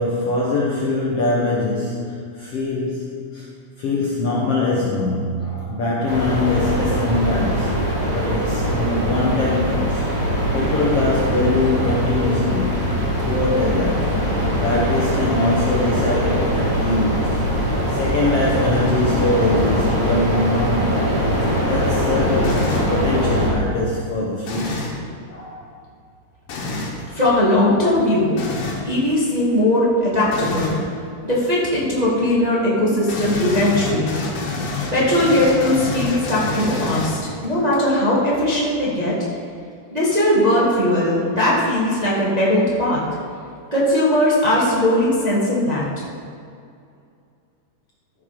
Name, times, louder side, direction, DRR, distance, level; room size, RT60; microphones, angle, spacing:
voice 1, 0.0-3.5 3.8-10.0 10.5-12.8 13.2-21.0 21.3-24.8 25.3-25.7 33.8-34.3 37.6-37.7, left 2 dB, 60° left, -4 dB, 1.7 m, -23 dB
sound 1, 6.1-23.5, equal, 55° right, 3.8 m, -21 dB
sound 2, 22.4-23.0 24.4-25.0 26.5-27.0 28.4-28.9 30.3-30.8 33.1-37.5, left 3 dB, 75° left, 3.2 m, -27 dB
voice 2, 27.1-28.4 28.8-30.7 31.2-34.2 34.9-39.1 39.9-43.0 43.7-45.8, left 1 dB, 15° right, -7 dB, 1.5 m, -19 dB
14.5 x 6.3 x 5.2 m, 2.4 s
omnidirectional pair, 3.9 m